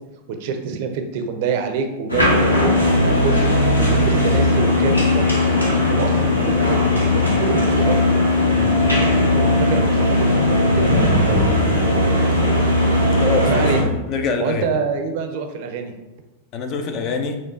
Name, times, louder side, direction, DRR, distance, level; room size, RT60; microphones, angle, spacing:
voice 1, 0.3-3.5 3.9-5.3 5.9-8.0 9.4-11.4 13.5-13.9 14.4-15.9, right 5 dB, 50° right, 5 dB, 0.5 m, -26 dB
sound 1, 2.1-13.8, left 1 dB, 85° left, 0.9 m, -17 dB
voice 2, 13.1-13.7 14.1-14.7 16.5-17.4, left 4 dB, 35° left, 6 dB, 0.5 m, -24 dB
4.5 x 2.4 x 3.7 m, 1.0 s
figure-of-eight pair, 90°, 0 cm